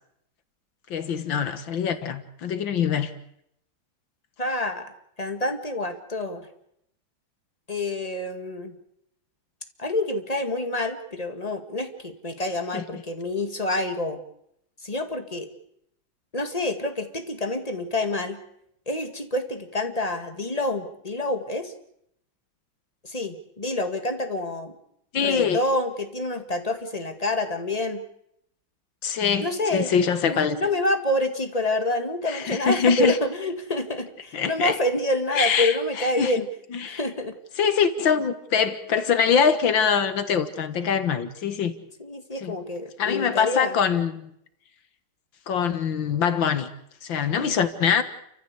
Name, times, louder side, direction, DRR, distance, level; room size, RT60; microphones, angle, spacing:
voice 1, 0.9-3.1 12.7-12.8 25.1-25.6 29.0-30.6 32.3-33.2 34.3-34.7 35.3-36.4 36.7-37.0 37.6-41.7 42.4-42.5 43.0-44.2 45.5-46.7 47.0-48.0, left 7 dB, 70° left, 2.2 m, -23 dB
voice 2, 4.4-4.9 5.2-6.5 7.7-8.8 9.8-14.2 14.8-15.5 16.3-18.4 18.9-21.7 23.0-24.7 25.2-28.0 29.4-29.9 30.3-36.5 36.9-37.4 42.0-43.7, left 1 dB, 20° left, 2.0 m, -27 dB
30.0 x 14.5 x 8.3 m
omnidirectional pair, 2.2 m